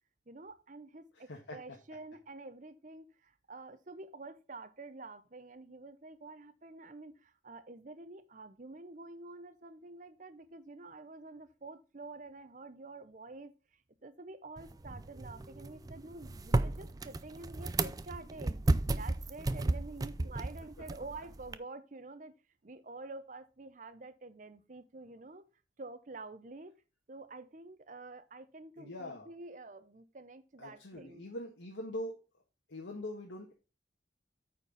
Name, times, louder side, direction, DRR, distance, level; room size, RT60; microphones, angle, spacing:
voice 1, 0.3-18.6 18.9-22.3 22.6-25.4 25.8-26.8 27.1-31.3, right 3 dB, 40° right, 0.7 m, -48 dB
sound 1, 14.6-21.6, right 2 dB, 20° right, 0.3 m, -34 dB
voice 2, 28.8-29.3 30.6-32.2 32.7-33.5, left 1 dB, 85° left, 1.4 m, -42 dB
9.1 x 4.4 x 5.3 m
head